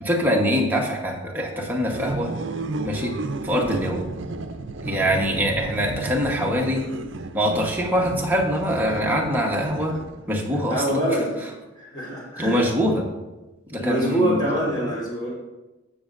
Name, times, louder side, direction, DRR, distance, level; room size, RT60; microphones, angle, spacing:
voice 1, 0.0-2.3 2.8-3.1 3.4-4.0 4.8-6.8 7.3-10.0 10.3-11.1 12.4-13.1 13.7-14.6, equal, 10° right, -1 dB, 1.1 m, -23 dB
sound 1, 1.8-10.4, right 3 dB, 60° right, 0.6 m, -33 dB
voice 2, 10.7-11.4 11.8-12.6 13.8-15.3, right 1 dB, 20° left, -6 dB, 3.4 m, -25 dB
15.0 x 6.4 x 2.6 m, 1.1 s
head